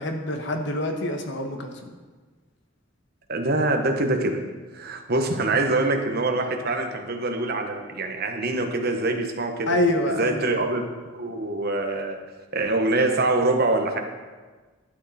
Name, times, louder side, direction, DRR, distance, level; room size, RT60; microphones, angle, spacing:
voice 1, 0.0-1.9 9.7-10.5, left 1 dB, 60° left, 4 dB, 1.2 m, -26 dB
voice 2, 3.3-4.4 4.7-9.8 10.2-10.8 11.1-12.2 12.5-14.0, right 2 dB, 50° right, 4 dB, 1.1 m, -24 dB
12.0 x 8.4 x 4.2 m, 1.4 s
head